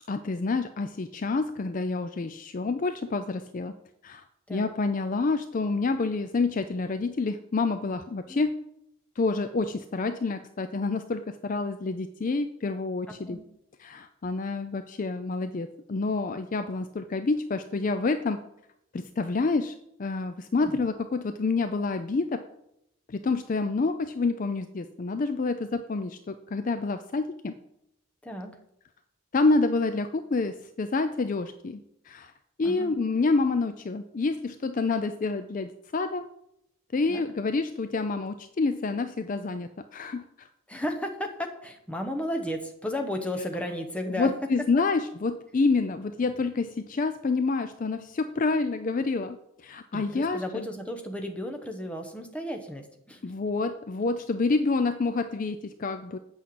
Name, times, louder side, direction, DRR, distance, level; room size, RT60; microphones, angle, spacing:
voice 1, 0.1-3.7 4.0-4.2 4.5-8.6 9.2-13.4 13.8-18.4 18.9-19.7 20.0-22.4 23.1-27.5 29.3-31.8 32.1-32.3 32.6-36.2 36.9-40.5 44.2-49.4 49.6-50.7 53.2-56.2, left 3 dB, 35° left, 9 dB, 0.4 m, -28 dB
voice 2, 13.1-13.5 20.5-20.7 28.2-28.6 32.6-32.9 37.1-37.2 40.7-44.3 49.9-53.2, left 1 dB, 5° left, 3 dB, 1.0 m, -34 dB
8.4 x 5.6 x 7.8 m, 0.79 s
head